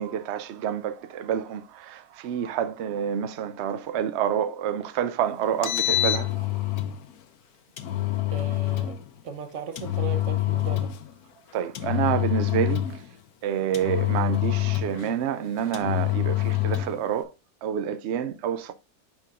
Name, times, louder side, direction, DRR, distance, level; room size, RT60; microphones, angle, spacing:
voice 1, 0.0-6.3 11.5-12.8 13.4-17.3 17.6-18.7, right 9 dB, 75° right, 0.6 m, -28 dB
Engine, 5.5-7.0 7.8-9.0 9.8-11.0 11.8-13.0 13.7-15.1 15.7-17.0, left 15 dB, 70° left, 1.2 m, -26 dB
voice 2, 8.3-9.0 9.2-10.9, right 6 dB, 55° right, 1.1 m, -37 dB
9.5 x 4.6 x 2.4 m
omnidirectional pair, 1.7 m